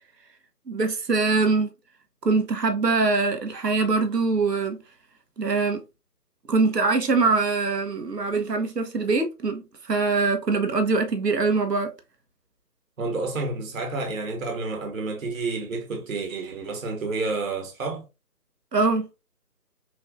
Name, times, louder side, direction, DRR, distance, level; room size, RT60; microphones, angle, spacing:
voice 1, 0.7-1.7 2.2-4.8 5.4-5.8 6.5-11.9 18.7-19.1, right 4 dB, 80° right, 1.1 m, -23 dB
voice 2, 13.0-18.1, right 3 dB, 55° right, 1.2 m, -30 dB
6.1 x 2.7 x 2.5 m
figure-of-eight pair, 150°, 48 cm